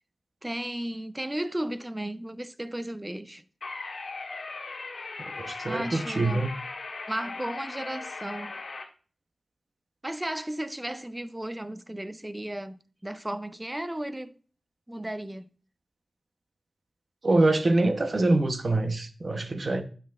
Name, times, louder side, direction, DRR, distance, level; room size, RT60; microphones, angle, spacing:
voice 1, 0.4-3.4 5.7-6.5 7.1-8.5 10.0-14.4 14.9-15.5, right 1 dB, 15° right, 0.5 m, -34 dB
sound 1, 3.6-8.8, left 3 dB, 70° left, 1.7 m, -38 dB
voice 2, 5.3-6.5 17.2-19.8, right 2 dB, 45° right, 0.8 m, -25 dB
10.5 x 5.9 x 2.4 m
wide cardioid pair, 90°, 0 cm